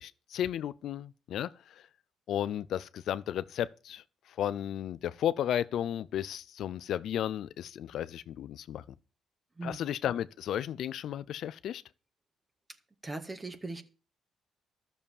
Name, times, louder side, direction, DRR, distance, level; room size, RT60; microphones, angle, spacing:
voice 1, 0.0-1.8 2.3-4.0 4.4-8.8 9.6-11.8, left 10 dB, 75° left, 0.6 m, -34 dB
voice 2, 9.6-9.9 12.7-12.8 13.0-13.8, right 2 dB, 20° right, 1.7 m, -39 dB
12.5 x 7.0 x 7.2 m
cardioid pair, 90°, 0 cm